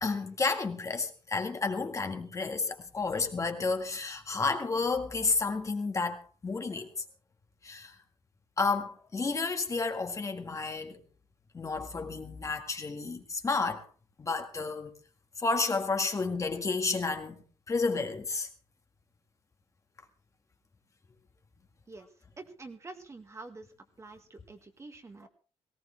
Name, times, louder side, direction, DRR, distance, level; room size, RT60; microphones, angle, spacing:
voice 1, 0.0-6.9 7.6-8.0 8.6-11.0 11.5-13.8 14.2-14.9 15.4-18.5, left 4 dB, 30° left, 1.7 m, -31 dB
voice 2, 22.4-23.7 24.0-25.3, right 3 dB, 30° right, 1.8 m, -47 dB
18.5 x 17.0 x 3.3 m
cardioid pair, 115°, 10 cm